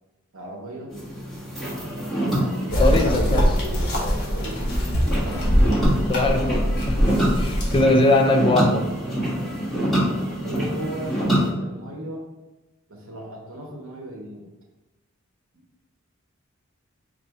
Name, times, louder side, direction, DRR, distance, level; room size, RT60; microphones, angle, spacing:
voice 1, 0.3-0.9 1.6-3.1 4.1-6.2 9.3-9.7 10.1-12.3 12.9-14.4, right 1 dB, 70° right, 0 dB, 0.9 m, -38 dB
sound 1, 0.9-11.5, equal, ahead, 1.3 m, -26 dB
sound 2, 2.7-7.9, equal, 50° left, 1.3 m, -22 dB
voice 2, 2.8-3.6 6.1-8.8, left 2 dB, 25° left, 3 dB, 0.3 m, -21 dB
4.2 x 2.5 x 4.5 m, 1.1 s
head